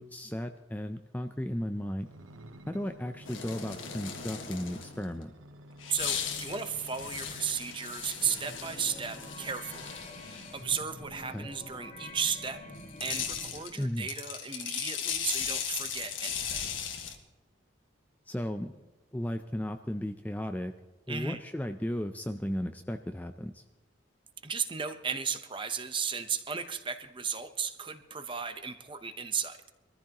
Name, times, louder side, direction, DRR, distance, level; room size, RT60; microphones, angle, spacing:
voice 1, 0.0-2.1 2.7-5.3 11.3-11.5 13.8-14.1 18.3-18.8 19.1-20.7 21.1-23.6, equal, 10° left, 6 dB, 0.5 m, -35 dB
sound 1, 2.0-10.0 10.6-11.8 12.5-12.6, equal, 90° right, 1.0 m, -52 dB
sound 2, 3.2-5.0 5.8-10.6 12.8-17.2, left 8 dB, 80° left, 1.7 m, -37 dB
voice 2, 5.9-12.6 13.0-16.7 21.1-21.4 24.4-29.7, right 6 dB, 25° right, 9 dB, 0.9 m, -35 dB
sound 3, 8.2-13.6, left 1 dB, 40° left, 2.0 m, -47 dB
23.0 x 14.0 x 3.0 m, 1.1 s
head